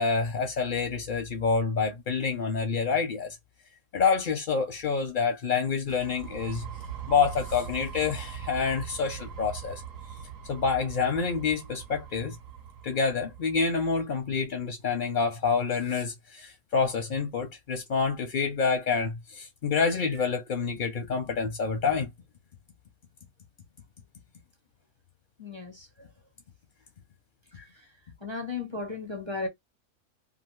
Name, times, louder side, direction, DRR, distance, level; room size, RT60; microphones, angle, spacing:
voice 1, 0.0-3.4 3.9-6.6 7.1-9.8 10.4-12.4 12.8-22.1 27.5-27.6, left 5 dB, 55° left, 0.6 m, -27 dB
sound 1, 5.9-13.5, right 7 dB, 65° right, 1.0 m, -41 dB
voice 2, 25.4-25.9 28.2-29.5, left 3 dB, 25° right, 0.7 m, -34 dB
2.7 x 2.5 x 3.0 m
omnidirectional pair, 1.5 m